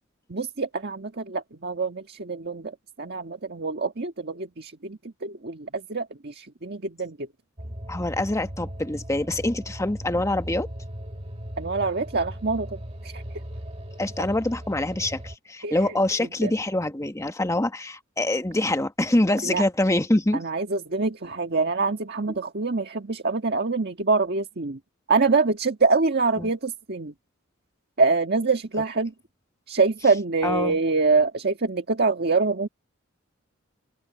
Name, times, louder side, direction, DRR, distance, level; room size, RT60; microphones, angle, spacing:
voice 1, 0.3-7.3 11.6-13.2 15.6-15.8 16.4-16.5 19.4-19.6 20.3-24.8 25.1-27.1 28.0-29.1 29.7-32.7, right 4 dB, 50° right, 1.6 m, -25 dB
sound 1, 7.6-15.4, equal, 30° right, 1.9 m, -38 dB
voice 2, 7.9-10.7 14.0-20.4 22.3-22.4 26.4-26.5 30.4-30.8, left 1 dB, 15° left, 1.2 m, -25 dB
open air
head